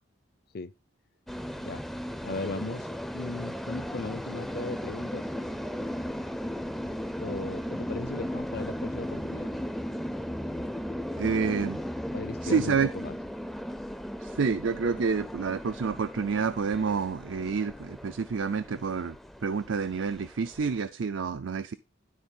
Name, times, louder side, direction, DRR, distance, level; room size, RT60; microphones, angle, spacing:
sound 1, 1.3-20.8, equal, ahead, 0.5 m, -36 dB
voice 1, 2.2-5.2 7.2-9.5 12.1-13.2, left 3 dB, 55° left, 0.7 m, -37 dB
voice 2, 11.2-11.8 12.4-12.9 14.2-19.2 19.4-21.7, right 5 dB, 80° right, 0.5 m, -28 dB
12.5 x 4.2 x 5.4 m
head